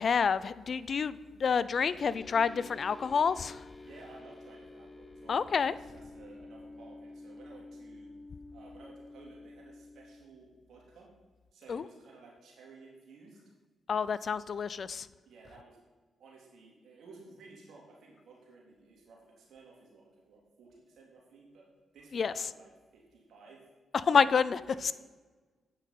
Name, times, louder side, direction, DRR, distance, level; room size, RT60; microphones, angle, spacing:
voice 1, 0.0-3.6 5.3-5.7 11.7-11.9 13.9-15.1 22.1-22.3 23.9-24.9, left 6 dB, 60° left, 17 dB, 0.3 m, -28 dB
sound 1, 2.0-10.2, left 2 dB, 25° left, 0.8 m, -50 dB
voice 2, 3.8-8.2 8.5-11.1 11.5-13.4 15.2-15.8 16.2-21.7 21.9-23.6 24.7-24.9, right 3 dB, 70° right, -3 dB, 3.1 m, -55 dB
8.9 x 5.5 x 5.6 m, 1.3 s
supercardioid pair, 45°, 0 cm